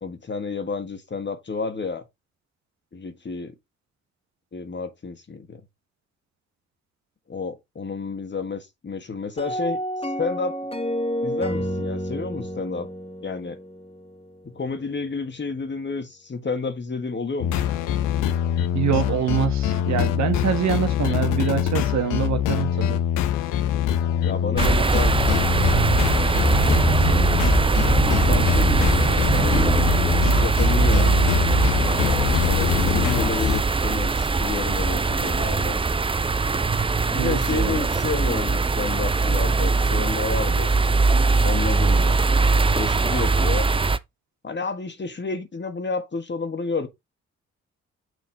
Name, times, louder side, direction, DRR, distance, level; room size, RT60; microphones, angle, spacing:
voice 1, 0.0-2.1 2.9-3.5 4.5-5.6 7.3-9.8 10.2-10.6 11.2-12.9 13.2-13.6 14.4-17.5 24.2-25.2 26.0-26.5 26.7-31.1 32.4-35.8 37.1-40.7 41.4-42.2 42.7-43.7 44.4-46.9, left 4 dB, 35° left, 1.6 m, -31 dB
sound 1, 9.4-14.5, equal, 20° left, 1.5 m, -30 dB
sound 2, 17.4-33.6, left 10 dB, 85° left, 0.8 m, -24 dB
voice 2, 18.7-23.0 37.2-37.8, right 9 dB, 60° right, 1.4 m, -25 dB
sound 3, 24.6-44.0, right 4 dB, 15° right, 0.6 m, -21 dB
6.4 x 4.0 x 4.0 m
hypercardioid pair, 45°, 31 cm